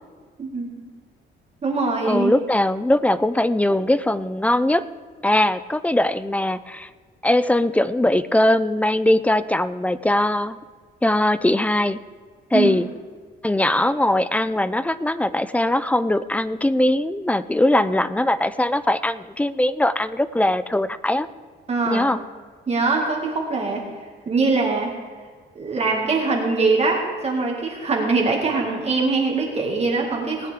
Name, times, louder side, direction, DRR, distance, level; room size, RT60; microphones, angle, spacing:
voice 1, 0.4-0.9 1.6-2.3 12.5-12.7 21.7-22.1 22.7-23.8 24.3-24.9 25.6-30.5, right 3 dB, 35° right, 0 dB, 2.1 m, -22 dB
voice 2, 2.1-4.8 5.2-6.9 7.2-10.6 11.0-12.0 12.5-12.9 13.4-21.3 21.9-22.2, left 1 dB, 5° left, 14 dB, 0.4 m, -20 dB
18.5 x 9.3 x 3.6 m, 1.5 s
cardioid pair, 135°, 19 cm